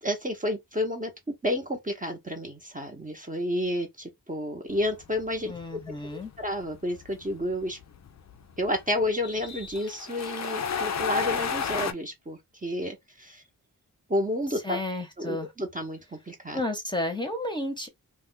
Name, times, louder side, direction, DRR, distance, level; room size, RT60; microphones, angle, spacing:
voice 1, 0.0-1.1 1.4-5.5 6.1-7.8 8.6-13.4 14.1-14.8 15.2-16.6, left 1 dB, 20° right, 0.8 m, -30 dB
sound 1, 4.7-11.9, left 6 dB, 50° left, 0.4 m, -33 dB
voice 2, 5.4-6.3 14.6-15.5 16.5-17.9, left 1 dB, 10° left, 0.8 m, -32 dB
2.3 x 2.2 x 3.7 m
wide cardioid pair, 85°, 36 cm